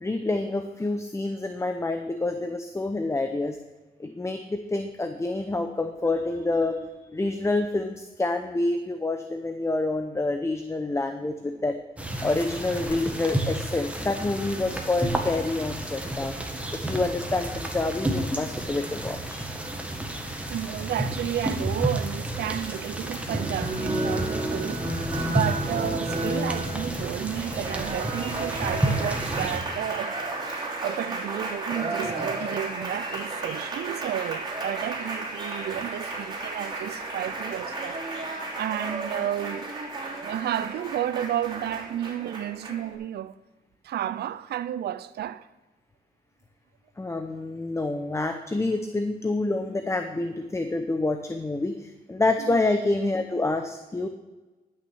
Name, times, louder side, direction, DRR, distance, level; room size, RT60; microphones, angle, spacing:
voice 1, 0.0-3.6 4.0-11.8 12.2-16.4 16.7-19.5 47.0-54.1, left 2 dB, 15° left, 0.7 m, -27 dB
sound 1, 12.0-29.6, right 1 dB, 10° right, 1.5 m, -31 dB
voice 2, 20.5-30.2 30.5-38.0 38.6-39.7 40.2-43.3 43.8-45.5 52.4-52.6, right 11 dB, 80° right, 0.5 m, -32 dB
Applause, 23.3-42.9, right 2 dB, 25° right, 2.9 m, -33 dB
11.5 x 6.3 x 6.2 m
cardioid pair, 95°, 17 cm